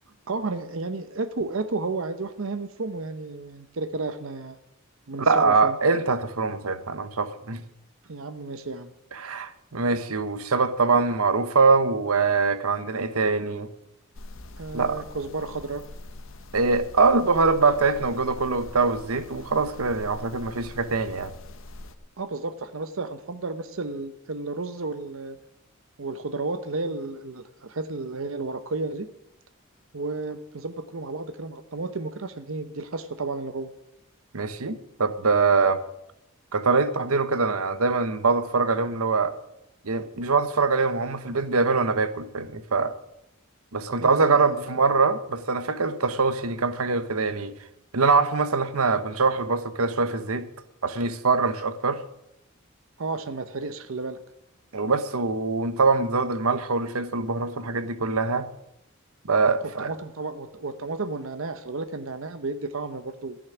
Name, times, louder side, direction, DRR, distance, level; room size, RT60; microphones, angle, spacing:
voice 1, 0.3-4.6 5.1-5.8 8.1-8.9 14.6-15.8 22.2-25.4 26.0-29.1 29.9-33.7 44.0-44.6 53.0-54.2 59.8-63.4, right 3 dB, 70° right, 10 dB, 0.8 m, -32 dB
voice 2, 5.2-7.6 9.1-13.7 14.7-15.0 16.5-21.3 34.3-35.8 36.5-39.4 39.8-42.9 43.7-47.5 47.9-50.5 50.8-52.0 54.7-58.5 59.2-59.9, right 4 dB, 90° right, 12 dB, 1.1 m, -23 dB
sound 1, 14.1-22.0, left 2 dB, 65° left, 1.0 m, -43 dB
14.0 x 6.4 x 9.9 m, 0.82 s
head